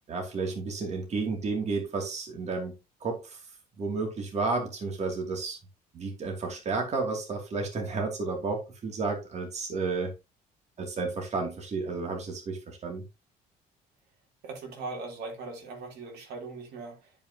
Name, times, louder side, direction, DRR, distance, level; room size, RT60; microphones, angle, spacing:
voice 1, 0.1-2.7 3.0-3.4 3.8-5.6 5.9-10.1 10.8-13.0, right 4 dB, 40° right, 2.5 m, -32 dB
voice 2, 14.4-17.3, right 3 dB, 75° right, 3.2 m, -40 dB
10.5 x 5.4 x 2.8 m
cardioid pair, 110°, 17 cm